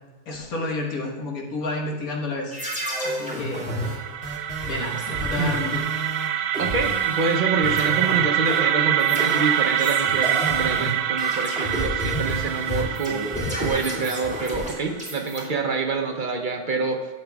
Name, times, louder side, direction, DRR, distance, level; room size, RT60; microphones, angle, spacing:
voice 1, 0.3-2.6 3.0-3.8 4.6-5.8, left 2 dB, 75° left, -1 dB, 1.9 m, -30 dB
sound 1, 2.5-7.4 7.6-15.4, equal, 5° right, 1.9 m, -31 dB
sound 2, 3.4-15.4, right 11 dB, 90° right, 1.1 m, -25 dB
voice 2, 5.4-5.8 6.6-13.3 13.6-17.0, right 4 dB, 50° right, 3 dB, 0.6 m, -27 dB
11.5 x 7.7 x 2.3 m, 1.3 s
omnidirectional pair, 1.6 m